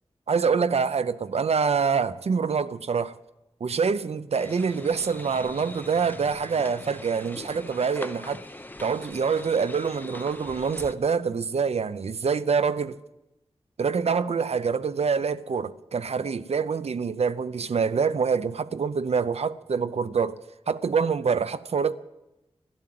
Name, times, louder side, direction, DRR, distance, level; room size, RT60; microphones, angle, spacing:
voice 1, 0.3-3.2 3.6-8.4 8.8-13.0 13.8-20.4 20.7-21.9, right 5 dB, 80° right, 0.6 m, -25 dB
sound 1, 4.3-10.9, left 1 dB, 15° left, 0.8 m, -42 dB
13.0 x 12.0 x 7.7 m
wide cardioid pair, 90°, 11 cm